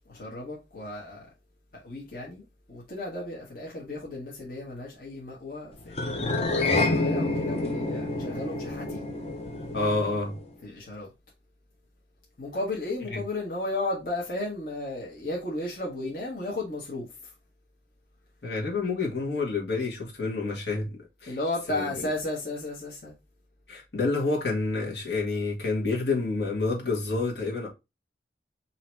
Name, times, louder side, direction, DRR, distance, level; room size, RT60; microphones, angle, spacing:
voice 1, 0.1-1.3 1.7-6.1 6.7-9.1 10.6-11.1 12.4-17.1 21.3-23.1, left 2 dB, 55° left, 1.4 m, -34 dB
sound 1, 5.9-10.5, left 2 dB, 35° left, 0.8 m, -28 dB
voice 2, 9.7-10.3 13.1-13.2 18.4-20.9 21.2-21.4 21.7-21.9 23.7-27.7, left 3 dB, 70° left, 1.5 m, -28 dB
3.9 x 2.8 x 4.5 m
head